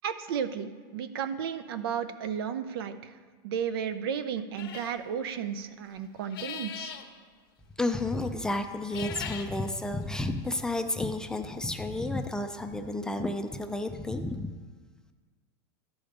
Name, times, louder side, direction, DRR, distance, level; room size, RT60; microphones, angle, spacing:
voice 1, 0.0-3.1 3.4-6.9, right 8 dB, 80° right, 11 dB, 0.6 m, -33 dB
sound 1, 4.6-5.0 6.2-7.1 8.8-9.5, left 8 dB, 85° left, 1.0 m, -39 dB
voice 2, 7.8-14.5, left 2 dB, 5° left, 6 dB, 0.3 m, -31 dB
12.0 x 5.1 x 5.1 m, 1.5 s
supercardioid pair, 155°, 12 cm